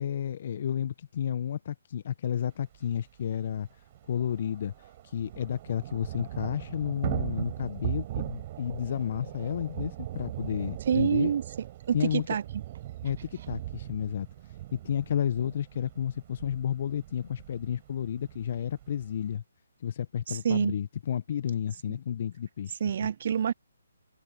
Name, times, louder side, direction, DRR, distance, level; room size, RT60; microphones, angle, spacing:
voice 1, 0.0-3.7 4.1-11.3 11.9-12.3 13.0-14.3 14.7-19.4 19.8-23.1, left 9 dB, 45° left, 1.1 m, -32 dB
Thunder / Rain, 2.7-2.8 3.1-3.2 3.5-19.3, right 14 dB, 35° right, 6.7 m, -39 dB
voice 2, 10.9-11.4 11.9-12.4 20.3-20.7 22.8-23.5, right 8 dB, 50° right, 0.3 m, -26 dB
figure-of-eight pair, 145°, 0 cm